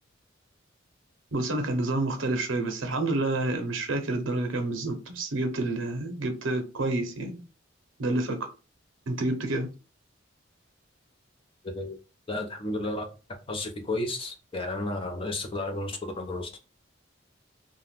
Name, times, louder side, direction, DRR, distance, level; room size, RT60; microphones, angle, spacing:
voice 1, 1.3-7.4 8.0-8.4 9.1-9.7, right 2 dB, 80° right, 0.7 m, -28 dB
voice 2, 12.3-13.0 13.5-16.5, left 2 dB, 30° left, 0.5 m, -32 dB
2.4 x 2.1 x 3.2 m
head